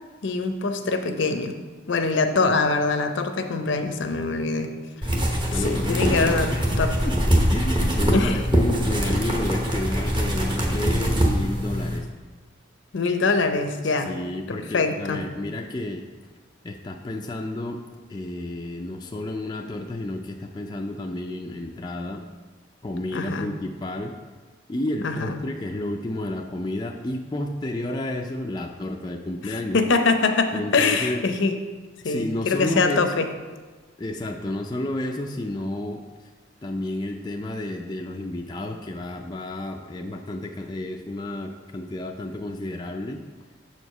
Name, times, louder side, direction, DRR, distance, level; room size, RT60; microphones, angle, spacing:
voice 1, 0.2-1.5 1.9-4.7 5.6-6.5 6.8-6.9 8.1-8.4 12.9-14.1 14.5-15.2 23.1-23.5 25.0-25.4 29.7-31.5 32.0-33.3, left 3 dB, 65° left, 7 dB, 0.6 m, -23 dB
sound 1, 5.0-12.0, equal, 25° right, 0.9 m, -23 dB
voice 2, 5.5-12.1 13.8-16.1 16.6-17.8 18.1-22.2 22.8-24.2 24.7-29.8 30.5-31.2 32.0-33.1 34.0-36.0 36.6-43.2, left 1 dB, 20° left, 2 dB, 0.4 m, -31 dB
7.2 x 4.7 x 5.4 m, 1.4 s
head